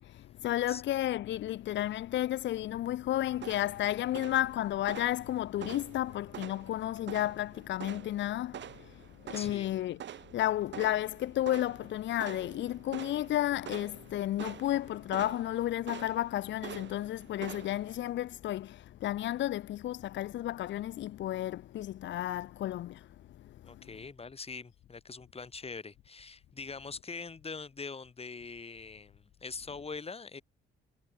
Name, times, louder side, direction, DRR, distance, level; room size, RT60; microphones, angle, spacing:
voice 1, 0.0-23.1 23.4-23.8, left 13 dB, 70° left, 0.6 m, -32 dB
sound 1, 3.3-18.1, right 10 dB, 65° right, 7.3 m, -47 dB
voice 2, 9.3-9.7 23.6-30.4, left 4 dB, 30° left, 4.5 m, -43 dB
cardioid pair, 90°, 20 cm